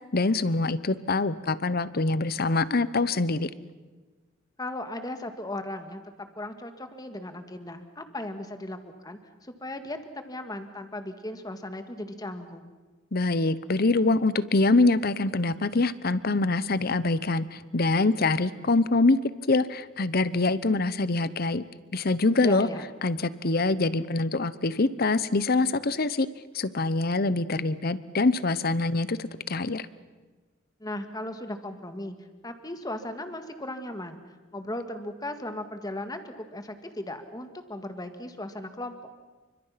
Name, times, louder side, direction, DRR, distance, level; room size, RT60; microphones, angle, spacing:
voice 1, 0.1-3.5 13.1-19.2 19.5-21.6 21.9-22.7 23.0-26.3 26.5-29.8, left 3 dB, 50° left, 16 dB, 0.9 m, -24 dB
voice 2, 4.6-12.7 22.4-22.9 30.8-32.2 32.4-34.2 34.5-38.9, left 1 dB, 20° left, 7 dB, 1.9 m, -37 dB
28.5 x 25.0 x 5.9 m, 1.3 s
head